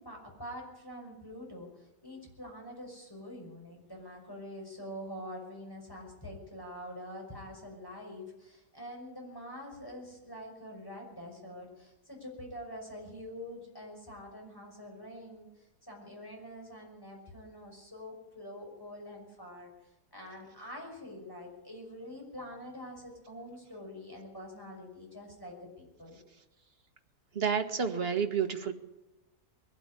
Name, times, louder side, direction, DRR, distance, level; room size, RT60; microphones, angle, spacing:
voice 1, 0.0-19.7 20.1-26.2, equal, 15° left, 0 dB, 5.9 m, -45 dB
voice 2, 27.4-28.7, right 6 dB, 40° right, 6 dB, 1.8 m, -30 dB
21.5 x 12.5 x 9.9 m, 0.97 s
omnidirectional pair, 1.7 m